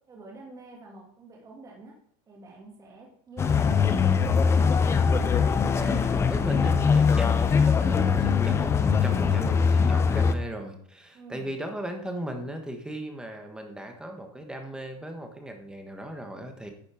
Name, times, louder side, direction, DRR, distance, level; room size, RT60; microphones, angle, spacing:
voice 1, 0.1-1.9 2.3-4.4 9.3-9.6 11.1-11.5, right 3 dB, 20° right, -2 dB, 2.3 m, -47 dB
sound 1, 3.4-10.3, left 6 dB, 15° left, 0.5 m, -22 dB
voice 2, 5.7-16.7, right 1 dB, 5° right, 4 dB, 1.3 m, -37 dB
10.5 x 6.3 x 4.9 m, 0.65 s
supercardioid pair, 155°, 17 cm